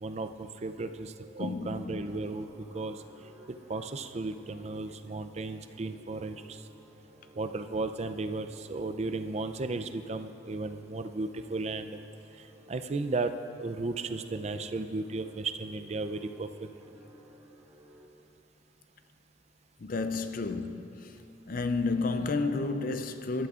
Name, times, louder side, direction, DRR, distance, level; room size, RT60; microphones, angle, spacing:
voice 1, 0.0-3.0 3.5-6.7 7.4-12.0 12.4-16.7, right 3 dB, 35° right, 0.4 m, -35 dB
sound 1, 0.9-18.1, right 1 dB, 15° right, 1.7 m, -55 dB
voice 2, 1.4-2.0 19.8-21.1 21.5-23.5, left 3 dB, 45° left, 0.5 m, -31 dB
21.5 x 11.5 x 2.5 m
head